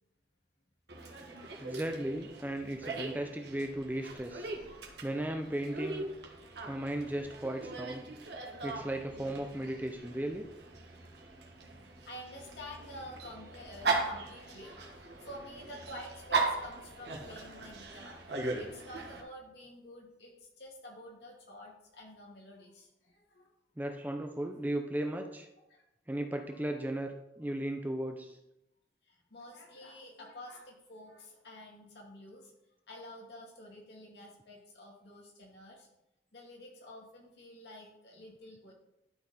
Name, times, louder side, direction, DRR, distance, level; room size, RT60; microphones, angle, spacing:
Dog, 0.9-19.2, right 3 dB, 75° right, 1.4 m, -39 dB
voice 1, 1.6-4.5 5.0-6.0 6.7-8.0 8.6-10.4 23.8-25.5 26.1-28.4, right 1 dB, 10° right, 4 dB, 0.5 m, -36 dB
voice 2, 11.7-18.2 18.6-23.5 25.6-25.8 26.5-26.6 29.1-32.5 32.9-35.9 36.3-38.7, left 1 dB, 70° left, -1 dB, 2.1 m, -50 dB
12.0 x 4.1 x 4.2 m, 0.88 s
head